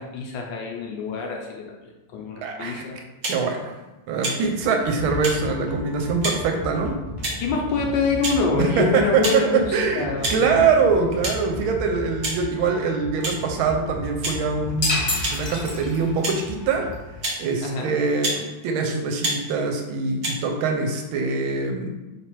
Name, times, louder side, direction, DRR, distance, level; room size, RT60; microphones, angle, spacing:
voice 1, 0.0-3.0 7.4-10.6 17.6-18.0, left 4 dB, 75° left, 0 dB, 1.1 m, -26 dB
voice 2, 2.4-2.8 3.2-3.7 4.1-6.9 8.6-15.1 15.3-16.9 17.4-21.9, right 5 dB, 75° right, 3 dB, 1.4 m, -23 dB
sound 1, 3.2-3.4 4.2-4.4 5.2-5.4 6.2-6.4 7.2-7.5 8.2-8.4 9.2-9.4 10.2-10.4 11.2-11.3 12.2-12.4 13.2-13.4 14.2-14.4 15.2-15.4 16.2-16.4 17.2-17.4 18.2-18.4 19.2-19.4 20.2-20.3, right 1 dB, 45° right, 0.9 m, -27 dB
sound 2, 4.6-17.7, equal, 20° left, 0.6 m, -36 dB
sound 3, 14.8-16.3, left 2 dB, 40° left, 1.0 m, -27 dB
3.3 x 3.2 x 4.4 m, 1.1 s
omnidirectional pair, 2.4 m